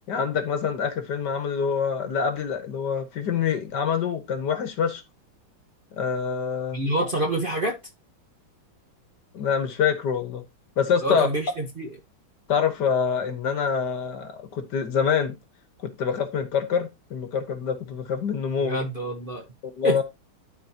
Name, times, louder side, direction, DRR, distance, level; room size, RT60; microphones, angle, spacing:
voice 1, 0.1-5.0 5.9-6.8 9.3-10.4 10.8-11.3 12.5-15.3 15.8-18.8 19.6-20.0, left 7 dB, 60° left, 1.6 m, -26 dB
voice 2, 6.7-7.7 11.0-11.9 18.6-19.4 19.8-20.0, right 1 dB, 35° right, 0.9 m, -27 dB
12.5 x 4.1 x 2.8 m
omnidirectional pair, 2.2 m